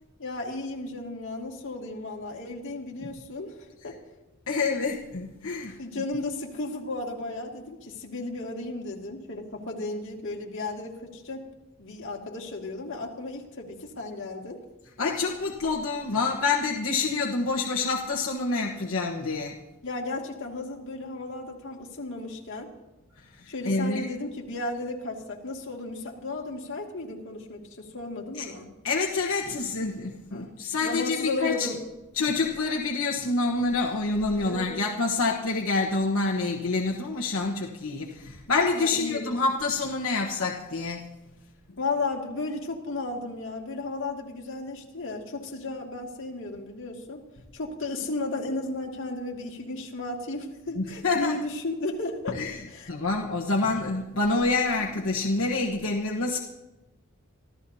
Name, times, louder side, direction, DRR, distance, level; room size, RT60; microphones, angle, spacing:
voice 1, 0.2-3.9 5.8-11.4 11.8-14.6 19.8-22.7 23.5-28.7 30.3-30.5 30.8-31.8 34.3-34.8 38.8-39.3 41.8-47.2 47.5-52.4 52.7-52.9 54.8-54.9, left 2 dB, 65° left, 0 dB, 2.3 m, -34 dB
voice 2, 4.5-5.8 15.0-19.6 23.4-24.1 28.3-28.4 28.8-31.7 32.2-41.1 50.8-51.3 52.3-52.6 52.9-56.4, left 3 dB, 80° left, -1 dB, 1.2 m, -27 dB
26.0 x 14.5 x 2.8 m, 1.1 s
head